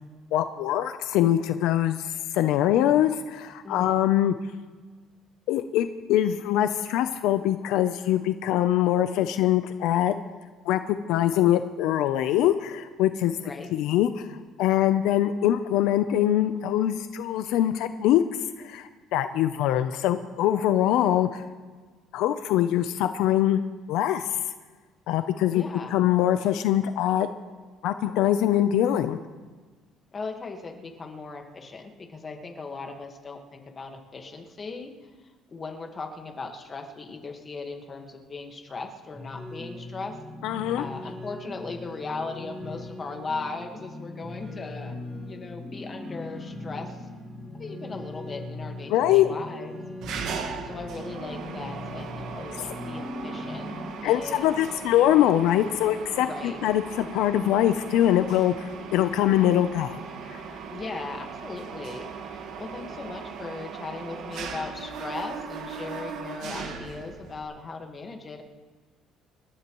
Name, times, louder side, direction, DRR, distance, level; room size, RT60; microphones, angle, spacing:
voice 1, 0.3-4.3 5.5-10.1 10.6-13.4 13.7-18.2 18.6-21.4 22.1-23.6 23.9-24.2 25.1-25.6 25.9-27.3 27.8-29.2 40.4-40.8 48.9-49.3 54.0-60.0 60.3-60.4, left 12 dB, 70° left, 10 dB, 0.6 m, -23 dB
voice 2, 13.4-13.7 25.5-26.0 30.1-34.9 35.5-40.2 40.7-45.0 45.2-47.0 47.6-49.8 50.6-53.8 54.0-54.7 56.2-56.6 60.7-68.4, left 3 dB, 20° left, 3 dB, 1.6 m, -38 dB
sound 1, 39.1-53.9, left 2 dB, ahead, 2.4 m, -39 dB
Mechanisms, 50.0-67.4, right 5 dB, 60° right, 1.8 m, -38 dB
27.5 x 13.5 x 3.1 m, 1.4 s
cardioid pair, 175°, 0 cm